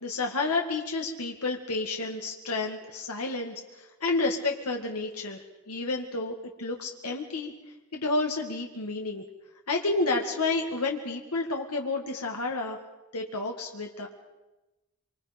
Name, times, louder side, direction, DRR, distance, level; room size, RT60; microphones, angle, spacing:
voice 1, 0.0-7.5 7.9-9.2 9.7-12.8 13.1-14.1, left 3 dB, 90° left, 2 dB, 2.1 m, -30 dB
26.0 x 25.5 x 5.3 m, 1.1 s
head